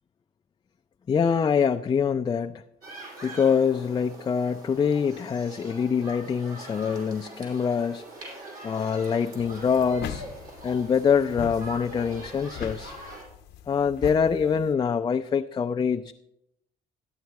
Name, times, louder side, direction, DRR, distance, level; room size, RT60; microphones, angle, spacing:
voice 1, 1.1-2.6 3.2-8.0 8.6-10.2 10.6-12.9 13.7-16.1, left 6 dB, 25° left, 6 dB, 0.4 m, -25 dB
sound 1, 2.8-13.2, right 2 dB, 60° right, 5.4 m, -43 dB
sound 2, 9.4-14.7, left 8 dB, 80° left, 0.9 m, -40 dB
14.0 x 9.6 x 4.6 m, 0.82 s
cardioid pair, 110°, 17 cm